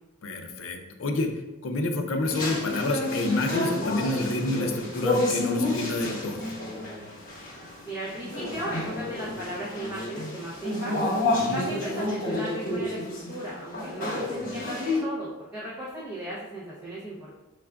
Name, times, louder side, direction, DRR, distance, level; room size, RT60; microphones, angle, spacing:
voice 1, 0.2-1.3 1.6-6.5 11.3-11.6, left 2 dB, 75° left, 5 dB, 0.5 m, -29 dB
sound 1, 2.2-15.0, left 2 dB, 40° left, 0.9 m, -30 dB
voice 2, 7.8-11.2 11.5-17.4, right 1 dB, 15° right, -9 dB, 0.6 m, -36 dB
5.7 x 2.3 x 2.2 m, 1.0 s
head